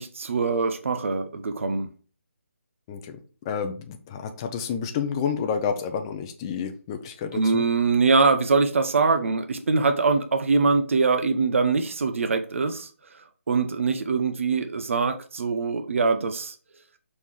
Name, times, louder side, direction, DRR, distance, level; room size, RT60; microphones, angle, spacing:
voice 1, 0.0-1.9 7.3-12.9 13.5-16.5, right 4 dB, 60° right, 8 dB, 0.8 m, -23 dB
voice 2, 2.9-3.2 3.4-7.6, left 6 dB, 20° left, 6 dB, 0.6 m, -30 dB
5.5 x 4.3 x 4.7 m, 0.39 s
hypercardioid pair, 165°, 8 cm